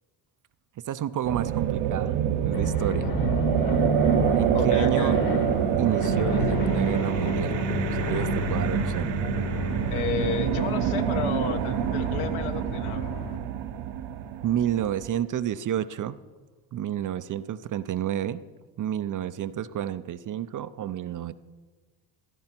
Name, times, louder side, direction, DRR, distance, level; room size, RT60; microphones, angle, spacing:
voice 1, 0.9-3.1 4.3-5.2 5.8-7.6 7.9-9.1 14.4-16.2 16.7-18.4 18.8-21.3, right 11 dB, 40° right, 13 dB, 0.5 m, -30 dB
sound 1, 1.2-15.1, right 10 dB, 60° right, 0.9 m, -26 dB
sound 2, 2.5-13.4, left 4 dB, 45° left, 1.5 m, -31 dB
voice 2, 4.5-5.2 9.0-13.1, left 6 dB, 70° left, 7 dB, 1.4 m, -33 dB
14.5 x 12.5 x 4.4 m, 1.3 s
cardioid pair, 100°, 49 cm